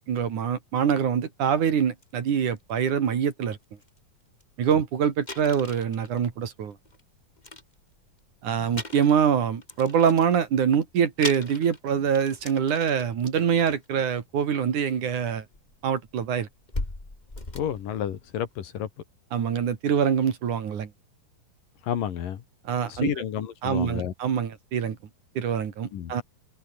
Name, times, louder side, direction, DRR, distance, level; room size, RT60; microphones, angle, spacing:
voice 1, 0.1-3.6 4.6-6.8 8.4-15.4 15.8-16.5 19.3-20.9 22.7-23.1 23.6-25.0 25.4-26.2, right 7 dB, 60° right, 3.7 m, -24 dB
sound 1, 2.0-2.1 2.6-2.8 3.5-3.6 3.8-4.0 4.4-4.5 4.7-4.8 5.2-7.0 7.4-8.3 8.7-10.4 10.9-11.0 11.2-13.2 13.5-13.9 15.0-15.1 15.5-18.5, left 2 dB, 15° left, 2.7 m, -39 dB
voice 2, 17.6-18.9 21.9-22.4 22.9-24.1 25.9-26.1, left 9 dB, 70° left, 3.6 m, -30 dB
omnidirectional pair, 4.1 m